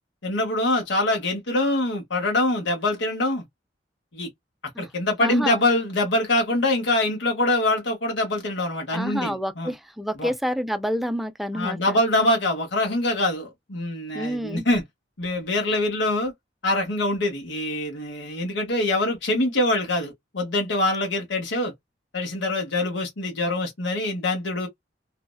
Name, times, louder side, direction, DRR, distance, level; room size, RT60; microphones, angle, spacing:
voice 1, 0.2-3.4 4.1-4.3 4.8-9.7 10.2-10.3 11.5-14.8 15.2-16.3 16.6-21.7 22.1-24.7, left 1 dB, 80° left, 0.9 m, -24 dB
voice 2, 5.2-5.6 8.9-12.0 14.1-14.7, equal, ahead, 0.4 m, -28 dB
2.7 x 2.1 x 2.2 m
head